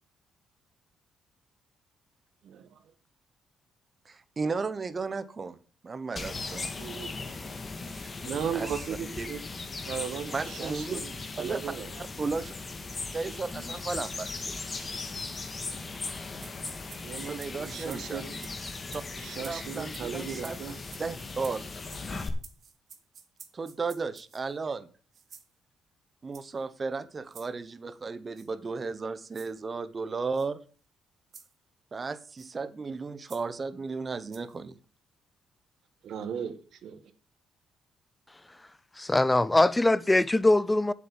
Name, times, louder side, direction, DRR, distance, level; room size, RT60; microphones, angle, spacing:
voice 1, 2.4-2.8 6.8-7.1 8.2-9.4 9.9-11.9 17.0-18.5 19.2-20.8 36.0-37.0, right 7 dB, 70° right, 1.6 m, -37 dB
voice 2, 4.1-5.6 5.8-6.7 8.5-8.7 9.2-9.3 10.3-11.0 11.4-11.6 12.2-12.5 13.1-14.6 17.2-18.2 18.9-19.0 19.5-20.6 21.0-21.6 23.5-24.9 26.2-30.6 31.9-34.8, right 4 dB, 35° right, 0.9 m, -34 dB
sound 1, 6.2-22.3, left 3 dB, 35° left, 1.7 m, -38 dB
sound 2, 16.4-24.6 25.1-25.5 26.3-26.6 27.3-27.5 28.4-28.5 29.3-29.5 30.3-30.5 31.3-31.5 32.4-32.5 33.3-33.4 34.3-34.6, right 7 dB, 55° right, 1.7 m, -51 dB
voice 3, 39.0-40.9, left 2 dB, 15° left, 0.5 m, -22 dB
8.1 x 7.5 x 7.1 m
cardioid pair, 90°, 0 cm